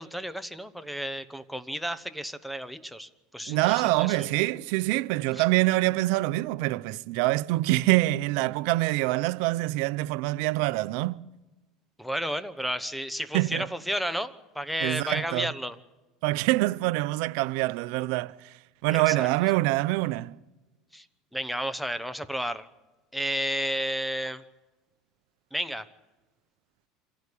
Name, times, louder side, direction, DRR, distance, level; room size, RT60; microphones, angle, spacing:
voice 1, 0.0-4.3 5.3-5.4 12.0-15.8 18.9-19.3 20.9-21.0 21.3-22.7 23.1-24.4 25.5-25.9, equal, ahead, 1.0 m, -32 dB
voice 2, 3.5-11.2 13.3-13.7 14.8-15.5 16.2-18.3 18.8-20.3, right 19 dB, 70° right, 0.6 m, -25 dB
26.0 x 15.5 x 8.5 m
supercardioid pair, 130°, 0 cm